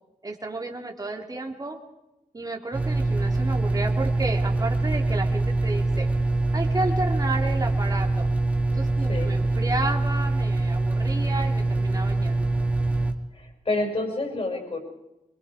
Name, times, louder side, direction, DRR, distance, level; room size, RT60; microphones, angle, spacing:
voice 1, 0.2-1.8 2.3-6.1 6.5-8.3 8.7-12.5, right 2 dB, 25° right, 2 dB, 2.6 m, -32 dB
sound 1, 2.7-13.1, right 2 dB, 10° right, 2.0 m, -24 dB
voice 2, 13.3-14.8, left 2 dB, 45° left, 3 dB, 6.0 m, -28 dB
23.5 x 22.5 x 4.9 m, 0.94 s
wide cardioid pair, 110°, 14 cm